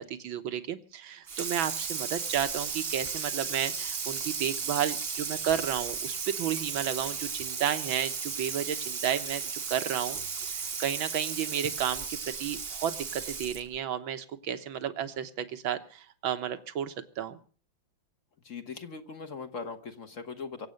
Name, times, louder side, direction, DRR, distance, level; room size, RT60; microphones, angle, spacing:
voice 1, 0.0-10.2 10.5-17.4, right 9 dB, 85° right, 9 dB, 2.0 m, -32 dB
Water tap faucet / Sink (filling or washing), 1.3-13.8, right 5 dB, 40° right, 1.0 m, -35 dB
voice 2, 18.4-20.7, left 5 dB, 45° left, 7 dB, 1.4 m, -40 dB
24.5 x 8.2 x 6.5 m, 0.42 s
omnidirectional pair, 2.1 m